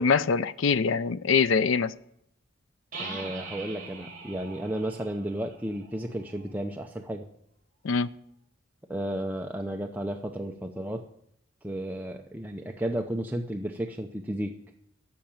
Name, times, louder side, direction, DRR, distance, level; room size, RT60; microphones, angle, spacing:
voice 1, 0.0-1.9 7.8-8.1, left 5 dB, 80° left, 15 dB, 0.5 m, -24 dB
sound 1, 2.9-6.6, right 3 dB, 40° right, 4.8 m, -42 dB
voice 2, 3.0-7.2 8.9-11.0 11.6-14.5, right 1 dB, 10° right, 2 dB, 0.6 m, -33 dB
14.0 x 5.9 x 8.8 m, 0.75 s
head